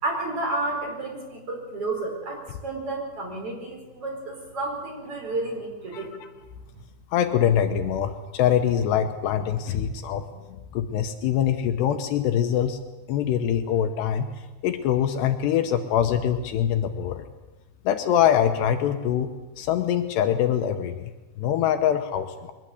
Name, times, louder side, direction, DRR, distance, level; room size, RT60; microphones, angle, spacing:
voice 1, 0.0-6.1, right 2 dB, 30° right, 1 dB, 5.4 m, -31 dB
voice 2, 7.1-10.2 10.5-12.8 13.1-14.3 14.6-17.2 17.9-19.3 19.6-21.1 21.4-22.5, left 9 dB, 75° left, 7 dB, 2.8 m, -24 dB
22.5 x 20.0 x 8.2 m, 1.2 s
omnidirectional pair, 5.5 m